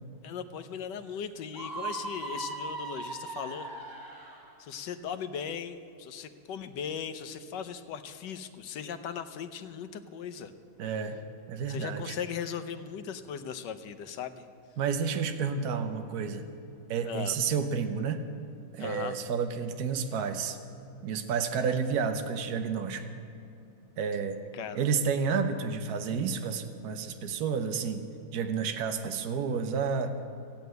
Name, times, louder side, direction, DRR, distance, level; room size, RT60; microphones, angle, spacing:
voice 1, 0.2-3.7 4.6-10.5 11.7-14.4 17.0-17.3 18.8-19.2 24.5-24.8, left 7 dB, 85° left, 10 dB, 1.4 m, -38 dB
Screaming, 1.5-4.5, right 2 dB, 15° right, 1.4 m, -38 dB
voice 2, 10.8-11.2 11.5-12.2 14.8-16.4 16.9-18.2 18.7-20.6 21.0-23.0 24.0-24.4 24.7-28.0 28.3-30.1, right 6 dB, 65° right, 7 dB, 1.4 m, -30 dB
14.5 x 8.9 x 9.3 m, 2.6 s
omnidirectional pair, 1.9 m